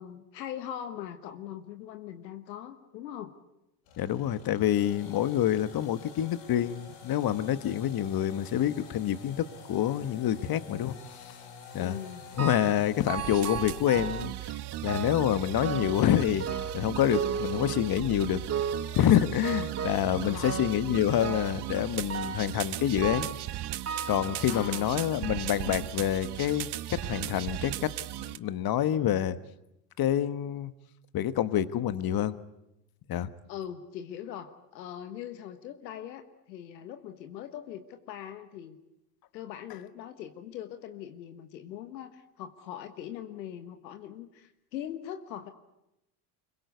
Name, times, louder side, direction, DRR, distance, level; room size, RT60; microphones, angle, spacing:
voice 1, 0.0-3.3 11.8-12.2 20.2-20.6 24.5-25.0 33.5-38.8 39.3-45.5, left 10 dB, 90° left, 8 dB, 1.5 m, -41 dB
sound 1, 3.9-14.1, left 4 dB, 70° left, 7.8 m, -49 dB
voice 2, 4.0-11.3 11.7-12.0 12.4-14.3 14.8-16.4 16.7-18.4 18.9-23.3 24.1-27.9 28.2-29.4 30.0-30.7 31.1-32.4 33.1-33.3, left 11 dB, 45° left, 13 dB, 1.3 m, -27 dB
sound 2, 12.4-12.8 13.1-14.4 14.9-15.3 15.6-16.1 16.4-18.1 18.5-19.0 19.4-20.1 20.4-20.9 21.2-21.6 22.1-22.5 23.0-23.5 23.9-24.9 25.6-25.7 26.5-26.6 27.0-27.1, right 7 dB, 30° right, 1.3 m, -35 dB
sound 3, 13.2-28.4, right 14 dB, 50° right, 1.2 m, -37 dB
25.0 x 22.0 x 8.2 m, 0.88 s
hypercardioid pair, 75°, 50 cm